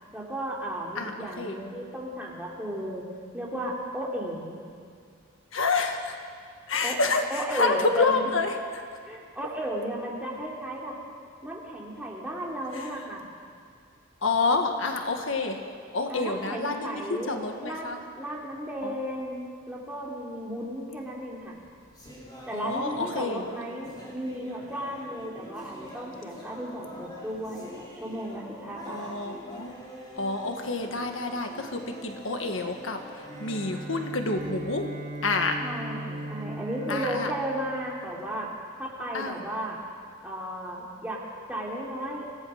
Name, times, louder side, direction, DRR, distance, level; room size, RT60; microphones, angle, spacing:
voice 1, 0.1-3.1 3.3-4.6 6.8-7.0 7.3-8.3 9.0-10.9 11.4-13.2 16.1-17.9 18.1-21.6 22.5-29.2 35.6-38.5 38.8-39.8 40.2-41.2 41.5-42.3, right 1 dB, 5° right, -3 dB, 3.1 m, -34 dB
voice 2, 0.9-1.6 5.5-6.1 6.7-8.8 12.7-12.9 14.2-15.6 15.9-18.0 18.8-18.9 22.5-23.4 28.9-29.7 30.2-33.0 33.4-34.9 35.2-35.6 36.9-37.3 39.1-39.4, left 3 dB, 70° left, 5 dB, 1.6 m, -28 dB
sound 1, 21.4-34.9, equal, 20° left, 4.0 m, -45 dB
Bowed string instrument, 33.1-38.3, right 1 dB, 25° right, 4.0 m, -39 dB
25.5 x 16.0 x 6.5 m, 2.2 s
head